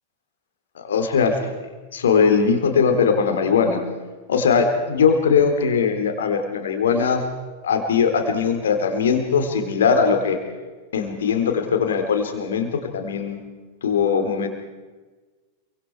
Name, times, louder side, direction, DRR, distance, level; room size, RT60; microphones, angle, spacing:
voice 1, 0.8-1.4 1.9-3.8 4.3-7.2 7.6-10.4 10.9-13.4 13.8-14.5, left 6 dB, 65° left, 5 dB, 3.6 m, -20 dB
28.0 x 24.5 x 4.8 m, 1.3 s
figure-of-eight pair, 90°, 0 cm